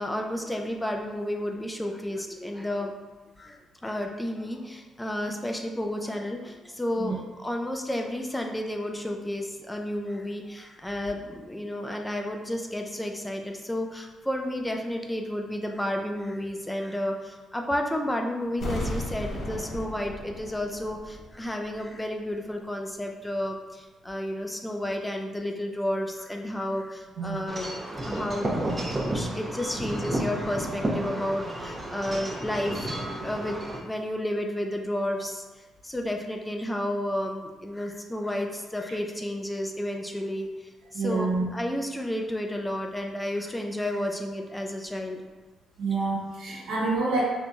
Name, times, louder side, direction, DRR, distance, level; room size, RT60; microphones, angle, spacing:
voice 1, 0.0-2.9 3.4-35.4 35.8-40.5 40.9-45.2, left 1 dB, 10° left, 2 dB, 0.3 m, -32 dB
sound 1, 18.6-21.5 21.7-21.8, left 1 dB, 60° left, 0.7 m, -35 dB
voice 2, 27.2-27.5 40.9-41.4 45.8-47.2, right 3 dB, 80° right, -5 dB, 1.1 m, -27 dB
Wind chime / Wind, 27.5-33.8, right 1 dB, 25° right, 0.8 m, -31 dB
4.3 x 2.6 x 2.2 m, 1.2 s
cardioid pair, 90°, 0 cm